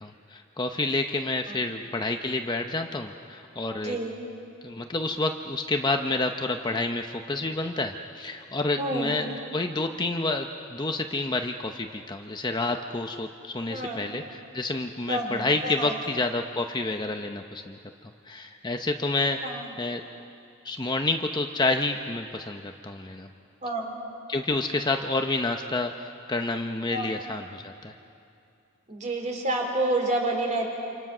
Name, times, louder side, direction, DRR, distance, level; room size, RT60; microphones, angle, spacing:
voice 1, 0.0-4.0 4.6-17.8 18.3-20.0 20.6-23.3 24.3-27.9, left 2 dB, 20° left, 4 dB, 0.7 m, -29 dB
voice 2, 8.8-9.1 13.7-14.0 15.1-15.9 19.4-19.6 23.6-23.8 26.9-27.1 28.9-30.7, right 1 dB, 35° right, 1 dB, 4.0 m, -28 dB
28.5 x 27.0 x 6.2 m, 2.6 s
head